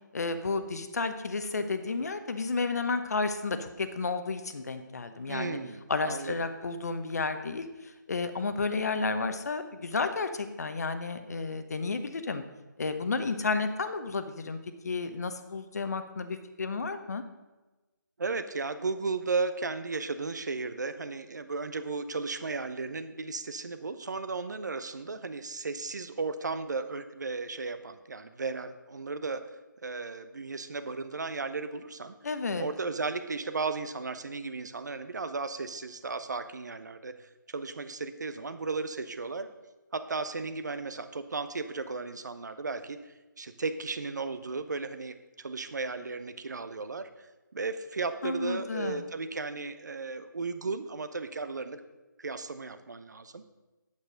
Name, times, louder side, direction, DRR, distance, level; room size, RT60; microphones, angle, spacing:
voice 1, 0.1-5.6 5.9-12.4 12.8-14.6 14.8-17.2 32.2-32.7 48.2-49.1, left 4 dB, 50° left, 9 dB, 0.9 m, -32 dB
voice 2, 5.3-6.5 18.2-29.4 29.8-32.2 32.6-39.5 39.9-51.8 52.2-53.4, right 4 dB, 60° right, 11 dB, 0.7 m, -35 dB
8.5 x 8.1 x 5.1 m, 1.1 s
figure-of-eight pair, 155°, 11 cm